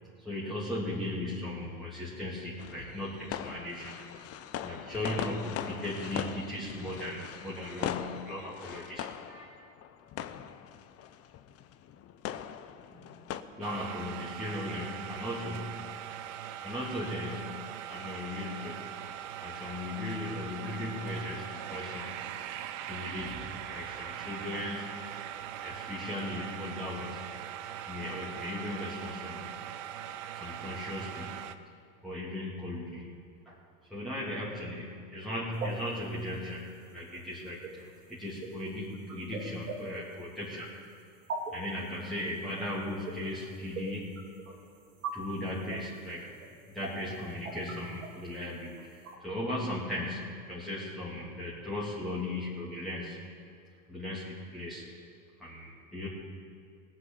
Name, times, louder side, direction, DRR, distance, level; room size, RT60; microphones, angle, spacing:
voice 1, 0.2-4.0 4.6-9.6 13.0-13.1 13.6-15.7 16.6-17.6 17.9-19.0 19.4-22.1 22.5-25.0 25.6-27.3 27.9-29.5 30.3-31.3 32.0-33.1 33.5-33.6 33.9-36.6 36.9-40.7 41.5-44.2 45.1-46.2 46.7-53.2 53.9-54.8 55.4-56.1, left 1 dB, ahead, -9 dB, 2.8 m, -37 dB
sound 1, 2.6-13.4, left 10 dB, 40° left, 0.7 m, -40 dB
sound 2, 13.6-31.5, right 10 dB, 65° right, 0.8 m, -41 dB
sound 3, 35.5-49.2, right 4 dB, 85° right, 2.2 m, -43 dB
17.5 x 6.2 x 8.9 m, 2.3 s
hypercardioid pair, 95°, 39 cm